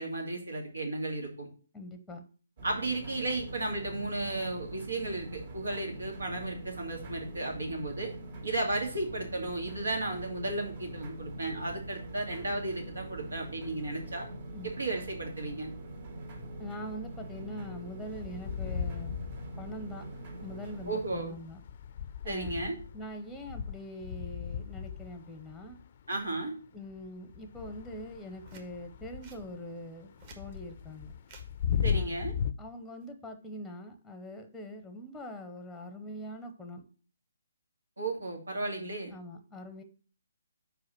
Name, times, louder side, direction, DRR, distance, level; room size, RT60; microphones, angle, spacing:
voice 1, 0.0-1.5 2.6-8.1 8.4-14.3 14.6-15.7 20.9-21.4 22.3-22.8 26.1-26.6 31.8-32.3 38.0-39.1, right 2 dB, 85° right, 1 dB, 2.3 m, -34 dB
voice 2, 1.7-2.2 14.5-14.7 16.6-19.1 19.6-20.1 20.4-21.6 22.2-25.8 26.7-31.1 31.9-32.3 32.6-36.8 39.1-39.8, left 1 dB, 5° left, 6 dB, 0.8 m, -43 dB
sound 1, 2.6-21.2, right 1 dB, 55° right, 2.6 m, -43 dB
sound 2, 18.1-20.2 20.8-26.5 26.9-32.5, left 8 dB, 45° left, 0.5 m, -36 dB
sound 3, 28.4-28.7 29.2-29.4 30.0-30.5 31.2-31.5 32.8-33.1, right 4 dB, 35° right, 1.4 m, -53 dB
4.9 x 4.7 x 6.0 m, 0.39 s
figure-of-eight pair, 145°, 0 cm